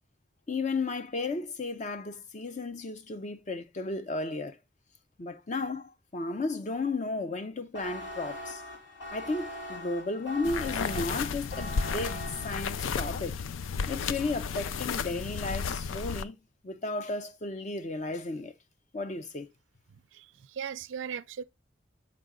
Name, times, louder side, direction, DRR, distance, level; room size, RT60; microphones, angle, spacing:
voice 1, 0.5-4.6 5.2-8.6 9.1-13.4 13.9-16.4 16.6-18.5 18.9-19.5, left 3 dB, 35° left, 0.5 m, -34 dB
sound 1, 7.7-13.0, left 1 dB, 70° left, 2.8 m, -42 dB
sound 2, 10.4-16.2, left 6 dB, 90° left, 0.4 m, -33 dB
voice 2, 20.1-21.4, right 7 dB, 75° right, 0.4 m, -38 dB
6.1 x 4.7 x 3.7 m
head